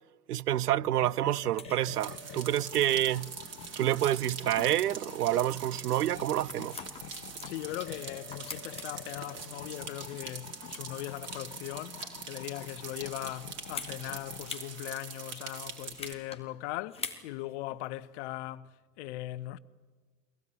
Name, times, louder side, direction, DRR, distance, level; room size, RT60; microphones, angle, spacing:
voice 1, 0.3-3.3 3.8-6.8, right 12 dB, 70° right, 0.6 m, -28 dB
sound 1, 0.8-14.5, left 7 dB, 70° left, 1.4 m, -49 dB
sound 2, 1.6-1.8 2.8-2.9 3.2-3.3 3.6-3.7 4.0-4.1 4.6-4.9 5.2-5.5 6.0-8.0 8.3-9.2 9.7-10.3 10.6-11.1 11.7-12.3 13.6-14.0 14.4-14.7 15.0-15.1 15.4-16.4 16.9-17.2 17.7-17.8, left 5 dB, 10° left, 2.5 m, -44 dB
sound 3, 1.9-16.1, right 6 dB, 30° right, 4.0 m, -44 dB
voice 2, 7.4-19.6, left 16 dB, 45° left, 0.9 m, -39 dB
24.0 x 17.0 x 10.0 m
figure-of-eight pair, 90°, 48 cm